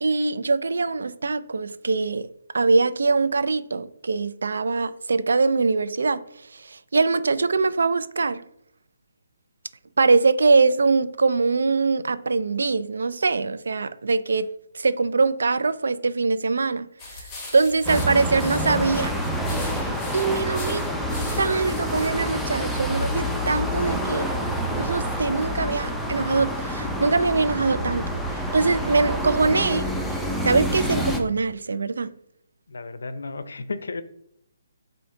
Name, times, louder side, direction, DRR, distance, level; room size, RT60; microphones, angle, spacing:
voice 1, 0.0-2.3 2.5-6.2 6.5-8.4 10.0-14.5 14.7-17.2 17.5-19.2 19.6-20.8 21.4-24.3 24.8-29.9 30.4-32.1, right 4 dB, 80° right, 0.3 m, -23 dB
sound 1, 17.0-22.1, left 2 dB, 15° left, 1.0 m, -40 dB
sound 2, 17.8-31.2, equal, ahead, 0.4 m, -27 dB
voice 2, 32.7-34.0, left 3 dB, 80° left, 0.4 m, -33 dB
4.3 x 2.6 x 3.6 m
hypercardioid pair, 160°, 0 cm